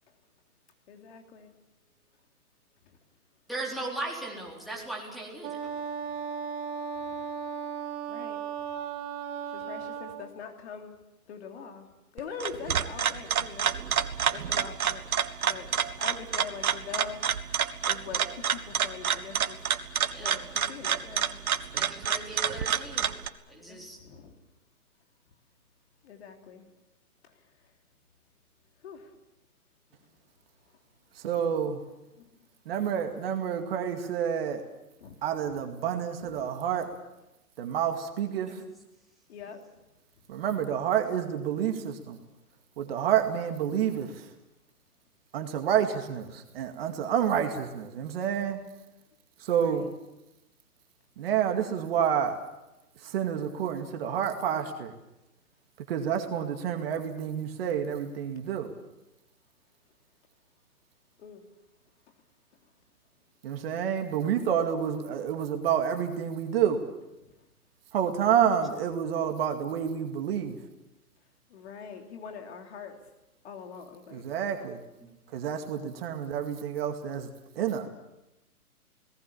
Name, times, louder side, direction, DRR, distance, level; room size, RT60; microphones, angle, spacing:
voice 1, 0.9-1.5 7.0-7.3 8.1-8.4 9.5-11.0 11.3-11.9 12.1-13.7 14.3-15.0 15.4-15.7 16.0-17.2 17.9-19.6 20.2-21.6 23.5-24.3 26.0-26.7 28.8-29.1 32.1-32.3 35.0-35.2 36.3-36.5 39.3-39.6 49.6-49.9 61.2-61.5 71.5-73.0 73.4-74.2 75.3-75.4, left 6 dB, 45° left, 4 dB, 3.3 m, -43 dB
voice 2, 3.5-5.7 20.1-20.4 21.8-23.1 23.5-24.0 75.0-75.1, right 2 dB, ahead, -1 dB, 4.0 m, -38 dB
Wind instrument woodwind instrument, 5.4-10.3, right 7 dB, 15° right, 0.9 m, -36 dB
sound 1, 12.2-23.3, right 8 dB, 70° right, 1.6 m, -29 dB
voice 3, 31.2-31.8 32.7-34.6 35.2-36.9 37.6-38.6 40.3-42.2 42.8-44.3 45.3-48.6 49.4-49.9 51.2-52.4 53.0-54.9 55.9-58.7 63.4-66.8 67.9-70.6 74.1-74.8 75.3-77.3 77.6-77.9, right 8 dB, 40° right, 5 dB, 2.2 m, -29 dB
29.5 x 19.0 x 7.2 m, 0.95 s
hypercardioid pair, 145°, 45 cm